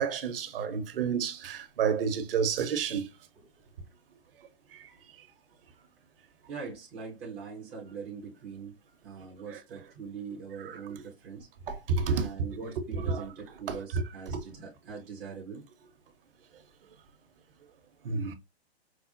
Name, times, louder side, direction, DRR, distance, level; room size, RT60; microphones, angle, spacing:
voice 1, 0.0-3.1 11.7-12.3 13.0-13.2 13.7-14.0 14.3-14.4 18.0-18.3, right 6 dB, 60° right, 0.8 m, -29 dB
voice 2, 6.5-8.8 9.0-11.5 12.1-15.6, right 5 dB, 5° right, 0.3 m, -42 dB
4.7 x 2.1 x 2.6 m
hypercardioid pair, 140°, 32 cm